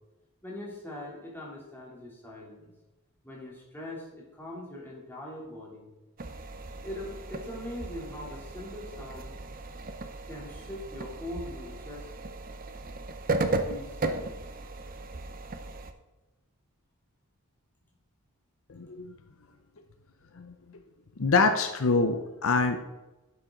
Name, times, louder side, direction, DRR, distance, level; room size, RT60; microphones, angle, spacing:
voice 1, 0.4-2.7 3.2-5.9 6.8-9.4 10.3-12.1 13.3-14.4, left 1 dB, 10° left, -5 dB, 3.1 m, -42 dB
sound 1, 6.2-15.9, right 2 dB, 40° right, 0.8 m, -36 dB
voice 2, 18.7-19.1 20.4-20.8 21.2-22.8, left 3 dB, 65° left, 7 dB, 0.7 m, -25 dB
11.0 x 7.6 x 3.9 m, 1.1 s
head